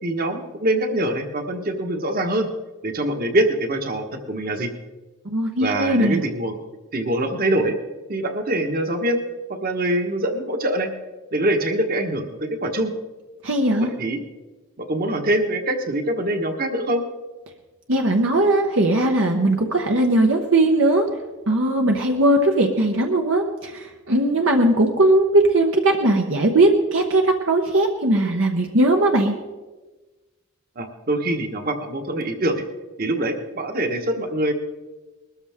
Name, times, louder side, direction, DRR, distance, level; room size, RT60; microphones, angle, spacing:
voice 1, 0.0-2.5 2.8-4.7 5.6-6.5 6.9-7.8 8.1-9.2 9.6-10.9 11.3-12.9 13.8-14.2 14.9-17.0 30.8-32.6 33.0-34.5, right 1 dB, 45° right, 5 dB, 1.4 m, -24 dB
voice 2, 5.2-6.2 13.4-13.9 17.9-21.1 21.5-29.4, right 1 dB, 65° right, 2 dB, 1.0 m, -19 dB
21.0 x 13.5 x 3.6 m, 1.2 s
head